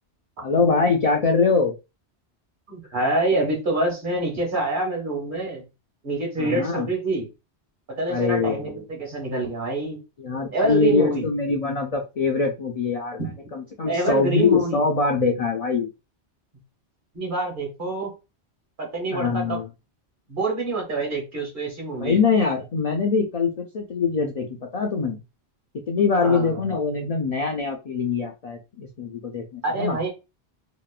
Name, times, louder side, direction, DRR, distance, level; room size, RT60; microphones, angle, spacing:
voice 1, 0.4-1.7 6.4-6.9 8.1-8.8 10.2-15.9 19.1-19.7 22.0-25.2 25.9-30.0, left 4 dB, 65° left, 2 dB, 0.3 m, -23 dB
voice 2, 2.7-5.7 6.0-7.3 8.0-10.0 10.5-11.3 13.2-13.3 13.8-14.8 17.1-18.1 18.8-19.6 20.3-22.2 26.2-26.6 29.6-30.1, right 2 dB, 50° right, 0 dB, 1.1 m, -26 dB
2.9 x 2.1 x 2.3 m, 0.27 s
omnidirectional pair, 1.2 m